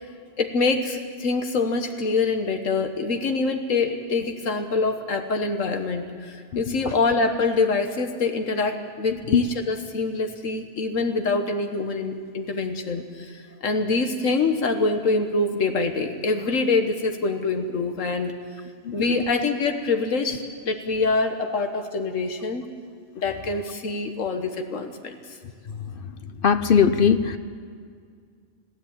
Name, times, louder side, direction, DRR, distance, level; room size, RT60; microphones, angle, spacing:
voice 1, 0.4-18.3 18.9-22.6 23.1-25.4, left 3 dB, 90° left, 5 dB, 1.6 m, -25 dB
voice 2, 6.5-6.9 9.3-9.4 18.8-19.2 25.7-25.9 26.4-27.4, left 7 dB, 50° left, 11 dB, 0.8 m, -21 dB
21.0 x 15.5 x 8.8 m, 2.1 s
omnidirectional pair, 1.3 m